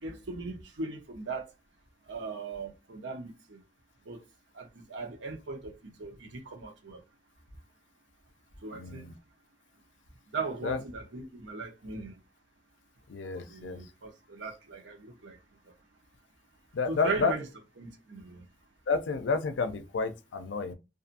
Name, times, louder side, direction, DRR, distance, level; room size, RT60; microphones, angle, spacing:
voice 1, 0.0-1.5 2.1-3.6 4.1-4.2 4.5-7.0 8.6-9.1 10.3-12.2 13.3-15.4 16.9-17.5 17.8-18.4, right 3 dB, 85° right, 0.8 m, -38 dB
voice 2, 8.7-9.1 10.6-10.8 13.1-13.8 16.7-17.3 18.9-20.7, left 4 dB, 80° left, 0.4 m, -30 dB
2.6 x 2.5 x 2.5 m
head